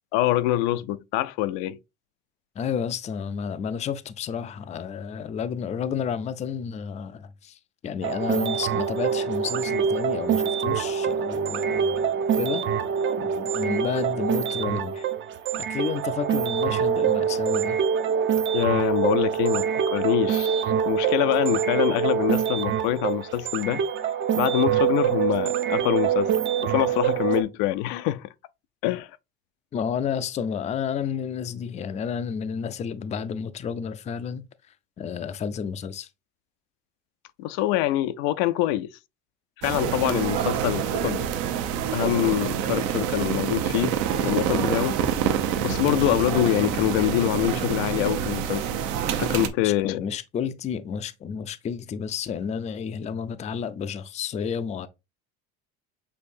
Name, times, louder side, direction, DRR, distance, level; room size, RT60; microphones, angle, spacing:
voice 1, 0.1-1.8 18.5-23.8 24.3-26.3 26.6-28.3 28.8-29.1 37.4-39.0 39.6-41.3 41.9-45.0 45.6-48.6 49.2-50.0, left 14 dB, 80° left, 0.5 m, -25 dB
voice 2, 2.6-12.6 13.2-15.1 15.5-17.8 29.7-34.4 35.0-36.1 49.6-54.9, left 7 dB, 20° left, 0.4 m, -31 dB
sound 1, 8.0-27.4, right 8 dB, 35° right, 0.5 m, -25 dB
sound 2, 39.6-49.5, right 8 dB, 70° right, 0.8 m, -26 dB
6.6 x 2.7 x 2.5 m
supercardioid pair, 110°, 33 cm